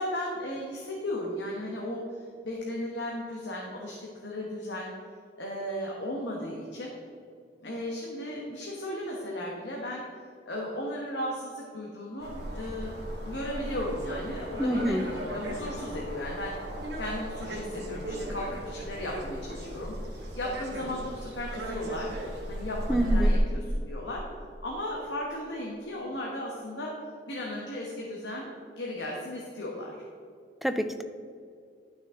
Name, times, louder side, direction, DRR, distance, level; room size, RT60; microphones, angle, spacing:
voice 1, 0.0-4.9 5.4-6.9 7.6-10.0 10.5-22.1 22.5-24.2 24.6-26.9 27.3-28.5 28.8-30.0, left 1 dB, 80° left, -2 dB, 1.3 m, -36 dB
sound 1, 12.2-23.4, right 1 dB, 65° right, 1.9 m, -34 dB
voice 2, 14.6-15.1 22.9-23.3 30.6-31.0, equal, ahead, 8 dB, 0.4 m, -27 dB
11.0 x 6.4 x 3.8 m, 2.4 s
head